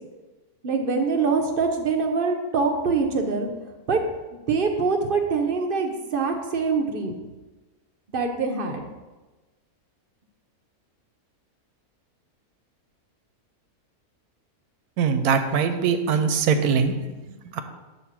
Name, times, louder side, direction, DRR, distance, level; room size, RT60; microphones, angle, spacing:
voice 1, 0.6-3.5 3.9-4.0 4.5-7.1 8.1-8.8, right 4 dB, 50° right, 4 dB, 0.7 m, -24 dB
voice 2, 15.0-16.9 17.5-17.6, right 6 dB, 90° right, 8 dB, 1.1 m, -21 dB
8.1 x 2.8 x 6.0 m, 1.2 s
omnidirectional pair, 1.6 m